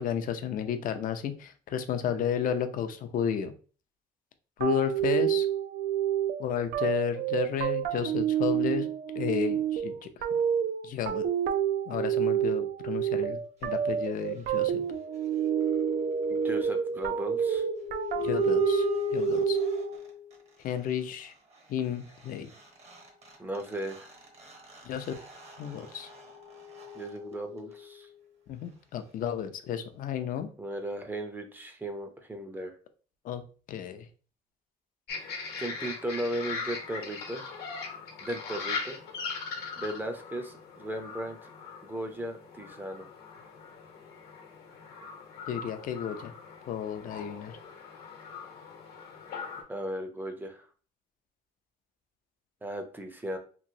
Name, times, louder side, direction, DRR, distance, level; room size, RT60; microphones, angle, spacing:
voice 1, 0.0-3.5 4.6-5.5 6.4-8.9 9.1-10.2 10.8-11.2 11.9-14.8 18.2-19.6 20.6-21.3 21.7-22.5 24.8-25.2 25.6-26.1 28.5-30.5 33.2-33.4 33.7-34.1 45.5-46.3 46.7-47.6, left 8 dB, 55° left, 8 dB, 0.5 m, -32 dB
sound 1, 4.6-20.0, right 10 dB, 60° right, 0.4 m, -29 dB
sound 2, 15.0-20.4 22.2-22.3 22.5-28.0, left 3 dB, 40° right, 0.9 m, -35 dB
voice 2, 16.3-17.7 23.4-24.1 26.9-28.1 30.6-32.8 35.6-37.4 38.2-39.0 39.8-41.5 41.8-43.1 49.7-50.7 52.6-53.4, right 1 dB, 10° right, 5 dB, 0.5 m, -36 dB
sound 3, 35.1-49.6, left 5 dB, 70° left, 0.9 m, -40 dB
3.0 x 2.6 x 2.6 m, 0.39 s
cardioid pair, 110°, 17 cm